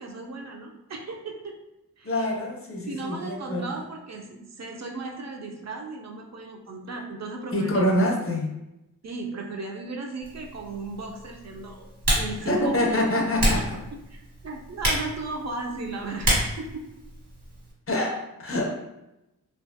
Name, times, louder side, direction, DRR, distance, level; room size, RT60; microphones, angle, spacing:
voice 1, 0.0-1.6 2.0-2.2 2.9-7.8 9.0-13.0 14.1-16.9, right 3 dB, 50° right, 1 dB, 0.5 m, -36 dB
voice 2, 2.0-3.7 7.5-8.6 12.4-13.8 17.9-18.8, left 1 dB, 40° left, 0 dB, 0.6 m, -25 dB
Typing, 10.2-17.7, right 1 dB, 70° right, 1.3 m, -30 dB
2.7 x 2.3 x 2.6 m, 0.91 s
wide cardioid pair, 100°, 35 cm